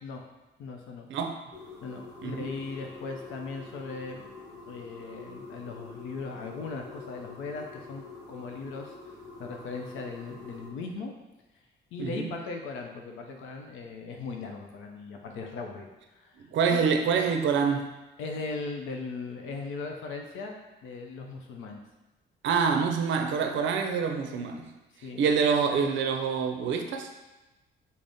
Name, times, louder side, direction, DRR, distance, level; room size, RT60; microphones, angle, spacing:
voice 1, 0.6-1.1 1.8-4.3 4.6-8.9 9.4-11.1 11.9-15.9 16.2-16.4 16.7-16.9 18.2-21.8 25.0-25.2, left 4 dB, 85° left, 2 dB, 0.5 m, -38 dB
voice 2, 1.1-1.4 2.2-2.4 12.0-12.3 16.5-17.9 22.4-24.7 25.2-27.1, right 6 dB, 70° right, 5 dB, 0.5 m, -26 dB
sound 1, 1.5-10.7, left 3 dB, 5° right, 1.0 m, -46 dB
3.4 x 2.0 x 4.0 m, 1.1 s
cardioid pair, 90°, 20 cm